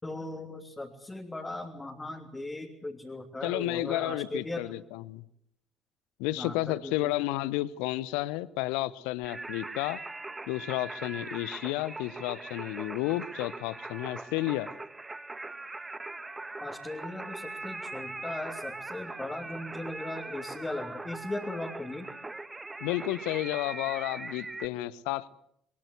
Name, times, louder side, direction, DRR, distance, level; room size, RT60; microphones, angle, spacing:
voice 1, 0.0-4.7 6.4-7.1 16.6-22.1, left 2 dB, 15° left, 3.2 m, -38 dB
voice 2, 3.4-5.2 6.2-10.0 10.5-14.7 22.8-25.3, left 16 dB, 65° left, 0.8 m, -32 dB
Singing, 9.2-24.7, right 2 dB, 15° right, 1.6 m, -41 dB
22.5 x 22.0 x 8.0 m
figure-of-eight pair, 55°, 0 cm